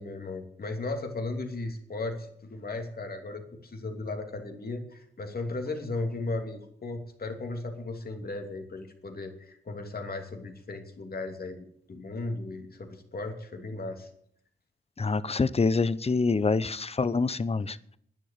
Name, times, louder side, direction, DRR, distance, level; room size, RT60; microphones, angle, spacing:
voice 1, 0.0-11.6 11.9-14.1, left 2 dB, 50° left, 4 dB, 2.9 m, -36 dB
voice 2, 15.0-17.8, left 4 dB, 30° left, 17 dB, 0.8 m, -26 dB
10.5 x 10.0 x 8.8 m, 0.67 s
cardioid pair, 60°, 19 cm